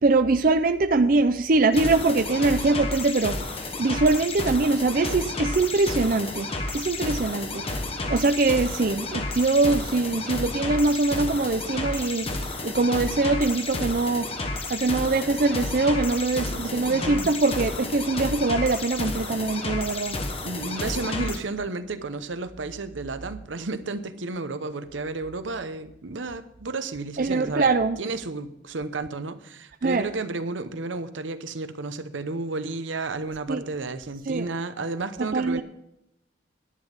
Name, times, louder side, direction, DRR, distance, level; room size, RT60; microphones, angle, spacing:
voice 1, 0.0-7.7 8.1-12.3 12.6-14.3 14.7-20.2 27.2-28.0 29.8-30.1 33.5-33.6 34.3-34.5 35.2-35.6, right 3 dB, 50° right, 8 dB, 0.5 m, -23 dB
sound 1, 1.7-21.4, left 2 dB, 30° left, 1.2 m, -31 dB
voice 2, 16.0-17.3 20.4-27.7 28.0-35.6, right 3 dB, 90° right, 11 dB, 0.8 m, -32 dB
11.0 x 9.4 x 5.3 m, 0.81 s
head